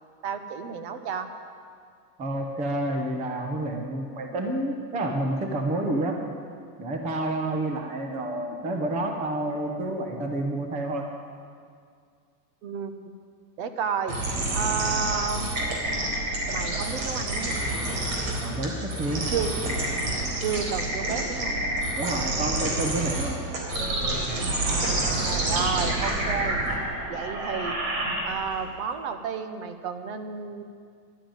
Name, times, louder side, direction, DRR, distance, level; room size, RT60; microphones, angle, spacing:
voice 1, 0.2-1.3 12.6-12.9 13.6-14.2 14.5-15.5 16.5-17.6 19.3-19.5 20.4-21.6 24.6-26.6 27.1-27.8 28.2-30.6, right 6 dB, 40° right, 9 dB, 0.9 m, -31 dB
voice 2, 2.2-6.2 6.8-11.1 18.4-19.3 22.0-23.4, right 1 dB, 15° right, 3 dB, 0.7 m, -29 dB
sound 1, 14.1-28.6, right 2 dB, 55° right, 4.1 m, -28 dB
sound 2, 17.1-21.0 21.4-25.9, equal, 20° left, 0.4 m, -42 dB
12.0 x 10.5 x 9.0 m, 2.1 s
supercardioid pair, 165°, 49 cm